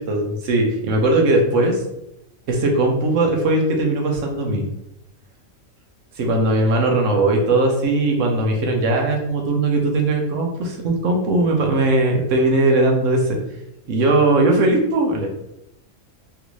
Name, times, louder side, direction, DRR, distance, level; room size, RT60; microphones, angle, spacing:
voice 1, 0.1-1.8 2.5-4.6 6.2-13.4 13.9-15.3, right 2 dB, 65° right, 1 dB, 1.0 m, -19 dB
3.5 x 2.5 x 3.0 m, 0.82 s
omnidirectional pair, 1.5 m